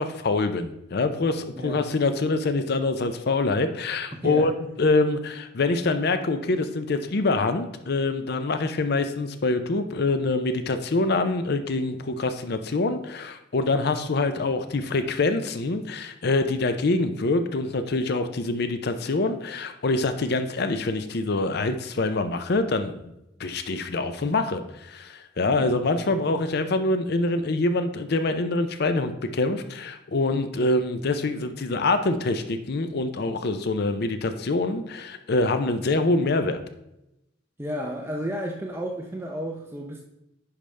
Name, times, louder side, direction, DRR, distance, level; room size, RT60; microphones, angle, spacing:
voice 1, 0.0-4.5 4.8-22.9 23.4-36.6, left 3 dB, 55° left, 9 dB, 0.5 m, -25 dB
voice 2, 1.5-1.9 4.1-4.5 25.4-26.1 37.6-40.0, equal, 15° right, 1 dB, 0.6 m, -33 dB
10.5 x 5.1 x 3.3 m, 0.87 s
head